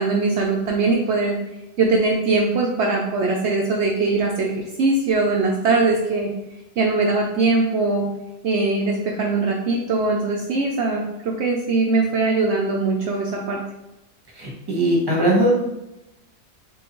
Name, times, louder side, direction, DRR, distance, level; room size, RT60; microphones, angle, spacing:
voice 1, 0.0-1.4 1.8-4.5 4.8-6.3 6.8-8.1 8.4-13.6, right 3 dB, 80° right, 0 dB, 0.6 m, -21 dB
voice 2, 14.4-15.5, right 1 dB, 20° right, -3 dB, 0.8 m, -19 dB
3.8 x 3.6 x 2.9 m, 0.92 s
omnidirectional pair, 1.7 m